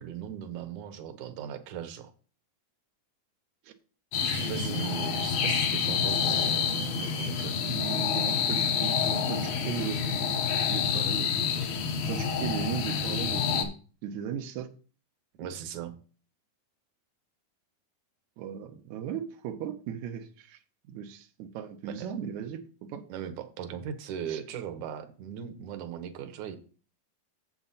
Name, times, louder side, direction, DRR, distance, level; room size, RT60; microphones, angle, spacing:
voice 1, 0.0-2.1 4.2-7.6 15.4-15.9 21.8-22.1 23.1-26.6, right 8 dB, 70° right, 7 dB, 1.9 m, -38 dB
sound 1, 4.1-13.7, left 6 dB, 80° left, 3.1 m, -28 dB
voice 2, 4.2-5.0 7.6-10.3 10.7-11.3 12.0-13.7 14.0-14.7 18.4-20.6 20.9-22.6 22.9-23.0 24.3-24.4, right 8 dB, 85° right, 4 dB, 1.6 m, -37 dB
7.7 x 7.5 x 4.1 m, 0.38 s
omnidirectional pair, 4.4 m